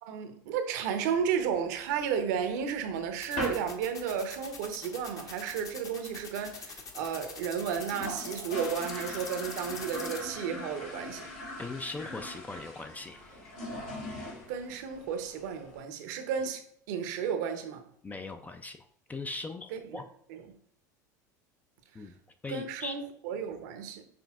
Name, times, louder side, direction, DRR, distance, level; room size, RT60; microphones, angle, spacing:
voice 1, 0.0-11.2 14.5-16.6 16.9-17.8 19.7-20.0 20.3-20.4 22.5-24.0, right 7 dB, 70° right, 0.7 m, -33 dB
sound 1, 1.1-2.2 2.6-2.7 2.9-3.1 3.4-4.1 4.5-4.6 4.8-5.3 5.6-5.7 5.9-6.0 6.2-6.3 6.8-6.9 7.2-7.3 7.6-15.8, left 1 dB, 70° left, 1.8 m, -41 dB
sound 2, 3.2-10.2, left 4 dB, 35° left, 1.0 m, -43 dB
voice 2, 11.6-13.5 18.0-20.1 21.9-22.2 22.4-22.9, left 3 dB, 15° left, 0.3 m, -40 dB
6.1 x 3.3 x 2.4 m
hypercardioid pair, 85°, 10 cm